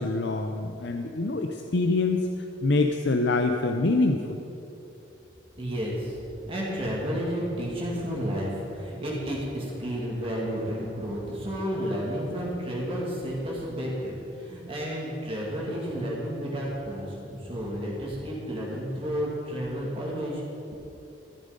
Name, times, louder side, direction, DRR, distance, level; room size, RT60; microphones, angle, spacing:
voice 1, 0.0-2.3 2.6-4.4, left 3 dB, 60° left, 4 dB, 0.7 m, -25 dB
voice 2, 5.6-20.4, equal, 30° right, -4 dB, 2.4 m, -31 dB
14.5 x 11.5 x 5.2 m, 2.9 s
head